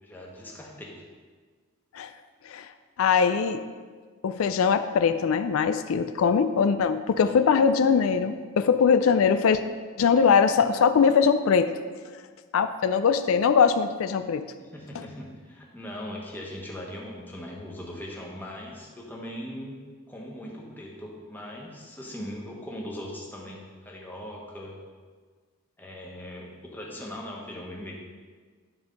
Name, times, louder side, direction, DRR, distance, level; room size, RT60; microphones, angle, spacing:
voice 1, 0.0-1.0 7.2-7.4 14.6-19.8 20.1-24.8 25.8-27.9, left 1 dB, 10° left, -2 dB, 1.2 m, -40 dB
voice 2, 3.0-3.6 4.2-9.6 10.0-11.7 12.5-14.5 14.9-15.0, left 6 dB, 80° left, 10 dB, 0.4 m, -21 dB
10.5 x 4.4 x 5.3 m, 1.6 s
head